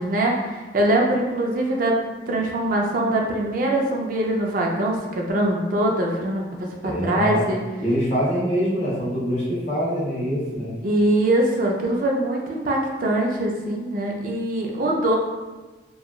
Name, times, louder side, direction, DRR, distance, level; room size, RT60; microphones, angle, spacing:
voice 1, 0.0-2.0 2.3-7.6 10.8-15.2, right 1 dB, 50° right, 0 dB, 0.4 m, -23 dB
voice 2, 6.8-7.4 7.8-10.8, equal, 35° left, -6 dB, 0.8 m, -24 dB
2.8 x 2.3 x 2.3 m, 1.2 s
head